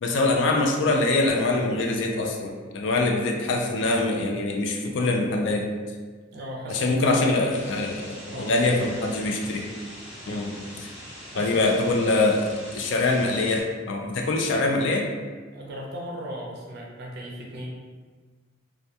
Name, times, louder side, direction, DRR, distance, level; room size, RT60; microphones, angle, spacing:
voice 1, 0.0-5.7 6.7-9.7 10.3-10.9 11.4-12.5 12.7-15.1, left 2 dB, 65° left, 1 dB, 0.3 m, -24 dB
voice 2, 6.3-7.4 8.3-9.2 11.3-11.7 15.5-17.7, equal, 55° right, -2 dB, 0.5 m, -37 dB
sound 1, 7.5-13.6, equal, 5° right, 0.7 m, -42 dB
2.2 x 2.2 x 2.7 m, 1.5 s
head